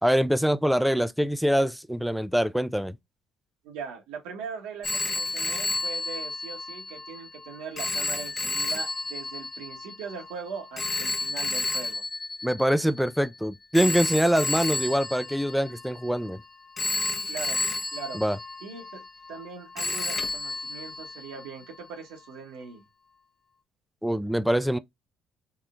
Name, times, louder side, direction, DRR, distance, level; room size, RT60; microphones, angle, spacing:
voice 1, 0.0-3.0 12.4-16.4 18.1-18.4 24.0-24.8, equal, ahead, 0.3 m, -24 dB
voice 2, 3.6-12.0 17.3-17.6 17.9-18.2 18.6-19.0 19.3-22.8, right 6 dB, 85° right, 1.2 m, -40 dB
Telephone, 4.8-13.2 13.7-16.3 16.8-19.5 19.8-21.5, left 2 dB, 35° left, 0.7 m, -32 dB
3.5 x 3.2 x 2.5 m
supercardioid pair, 80°, 0 cm